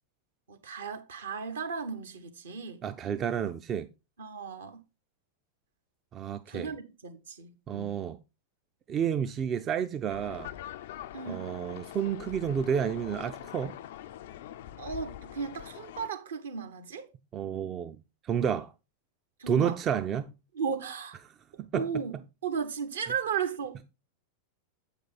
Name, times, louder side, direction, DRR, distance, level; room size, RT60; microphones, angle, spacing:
voice 1, 0.5-2.8 4.2-4.8 6.5-8.0 11.1-11.5 14.8-17.1 19.4-19.8 20.5-21.2 21.7-22.2 22.4-23.8, right 6 dB, 65° right, 1.1 m, -35 dB
voice 2, 2.8-3.9 6.1-6.7 7.7-8.2 8.9-10.5 11.3-13.8 17.3-18.0 18.2-18.7 19.5-20.3 21.6-21.9, right 8 dB, 30° right, 0.4 m, -30 dB
sound 1, 10.1-16.1, left 12 dB, 55° left, 0.3 m, -43 dB
7.9 x 5.2 x 4.2 m
figure-of-eight pair, 90°, 0 cm